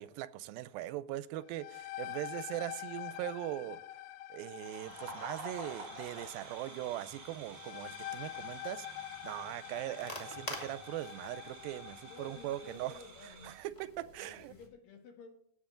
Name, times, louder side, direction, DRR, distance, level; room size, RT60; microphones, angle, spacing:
voice 1, 0.0-3.8 4.3-13.0 13.4-14.5, right 14 dB, 90° right, 2.4 m, -40 dB
sound 1, 1.4-12.8, left 14 dB, 85° left, 2.4 m, -46 dB
sound 2, 4.5-13.6, right 2 dB, 40° right, 4.2 m, -50 dB
sound 3, 4.8-14.7, equal, 15° left, 1.2 m, -51 dB
voice 2, 12.1-13.5 14.2-15.3, left 4 dB, 70° left, 3.4 m, -53 dB
17.0 x 7.7 x 3.8 m
omnidirectional pair, 4.1 m